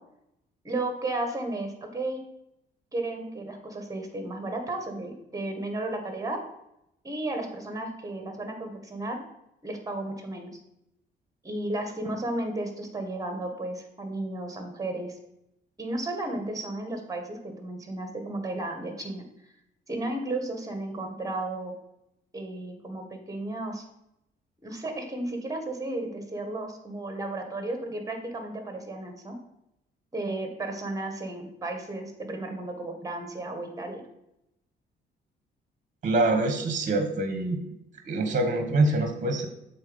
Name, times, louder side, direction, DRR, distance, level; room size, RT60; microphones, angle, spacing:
voice 1, 0.6-2.2 2.9-6.4 7.0-9.2 9.6-10.5 11.4-15.2 15.8-19.2 19.9-21.7 22.3-23.8 24.6-29.4 30.1-34.0, right 2 dB, 15° right, 5 dB, 1.6 m, -33 dB
voice 2, 36.0-37.6 38.0-39.5, right 2 dB, 40° right, 7 dB, 1.1 m, -25 dB
7.2 x 4.1 x 5.2 m, 0.83 s
cardioid pair, 90°, 20 cm